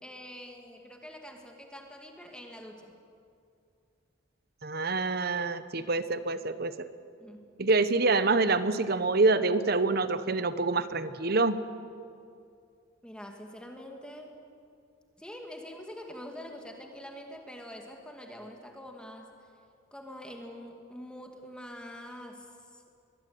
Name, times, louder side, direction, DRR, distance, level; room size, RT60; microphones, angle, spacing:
voice 1, 0.0-3.0 7.2-7.4 13.0-14.4 15.2-19.3 19.9-22.8, equal, 5° left, 2 dB, 2.3 m, -45 dB
voice 2, 4.6-6.9 7.6-11.6, right 3 dB, 50° right, 13 dB, 1.0 m, -26 dB
23.5 x 20.5 x 9.4 m, 2.4 s
head